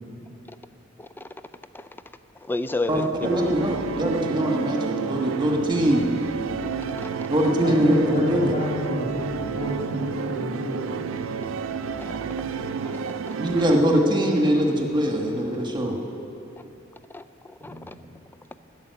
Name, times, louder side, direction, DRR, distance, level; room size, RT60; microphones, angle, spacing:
voice 1, 1.0-1.3 1.7-1.9 2.4-3.6 6.9-7.1 12.8-12.9 17.1-17.9, left 2 dB, 10° left, 11 dB, 0.4 m, -31 dB
voice 2, 2.9-6.1 7.3-8.6 13.4-16.0, equal, 25° right, 1 dB, 1.4 m, -22 dB
sound 1, 3.2-13.8, right 6 dB, 85° right, 0.4 m, -30 dB
voice 3, 7.6-10.8 17.6-17.9, left 1 dB, 35° left, -5 dB, 3.1 m, -29 dB
12.5 x 7.4 x 9.5 m, 2.7 s
head